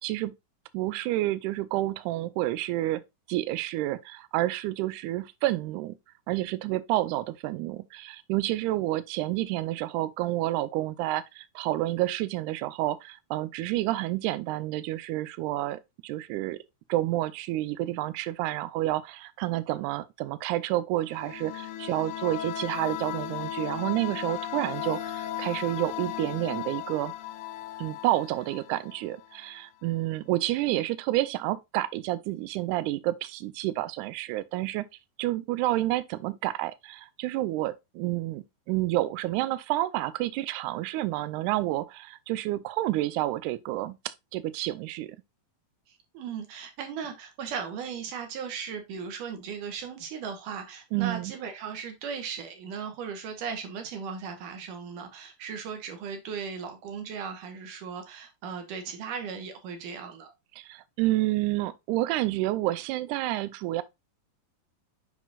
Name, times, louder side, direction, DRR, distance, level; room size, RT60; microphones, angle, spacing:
voice 1, 0.0-0.3 0.7-3.0 3.3-5.9 6.3-16.6 16.9-27.1 27.8-34.8 35.2-45.2 50.9-51.3 60.6-63.8, right 16 dB, 85° right, 1.7 m, -29 dB
sound 1, 21.0-29.6, left 12 dB, 85° left, 1.7 m, -36 dB
voice 2, 45.9-60.3, right 6 dB, 70° right, 2.6 m, -37 dB
7.4 x 5.7 x 2.4 m
omnidirectional pair, 4.1 m